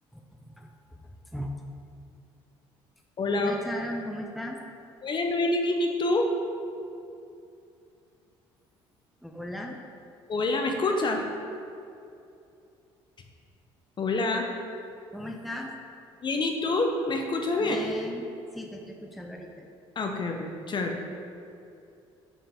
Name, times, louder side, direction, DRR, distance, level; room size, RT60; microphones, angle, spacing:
voice 1, 0.1-1.5 3.3-4.6 9.2-9.8 15.1-15.8 17.6-18.3 18.5-19.7, left 1 dB, ahead, 1 dB, 0.6 m, -37 dB
voice 2, 3.2-3.5 5.0-6.3 10.3-11.3 14.0-14.5 16.2-17.8 20.0-20.9, left 2 dB, 40° left, 3 dB, 0.7 m, -27 dB
5.4 x 4.8 x 3.6 m, 2.6 s
supercardioid pair, 65°, 12 cm